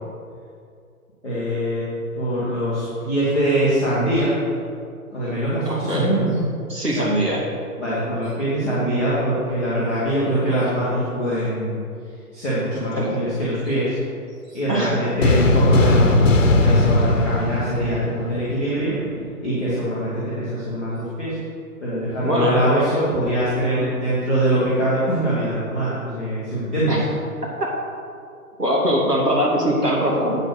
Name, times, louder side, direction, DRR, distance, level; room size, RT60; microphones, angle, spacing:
voice 1, 1.2-1.8 2.1-4.3 5.1-6.4 7.0-7.2 7.8-11.8 12.3-13.9 14.5-19.0 19.4-21.4 21.8-26.9, right 1 dB, ahead, -16 dB, 0.6 m, -23 dB
voice 2, 5.7-6.2 6.7-7.4 13.0-13.1 14.7-15.0 22.2-22.6 26.9-27.0 27.4-27.7 28.6-30.4, equal, 85° right, -3 dB, 2.7 m, -22 dB
sound 1, 15.2-18.7, left 2 dB, 55° left, 1.0 m, -18 dB
8.0 x 6.7 x 6.5 m, 2.4 s
figure-of-eight pair, 135°, 46 cm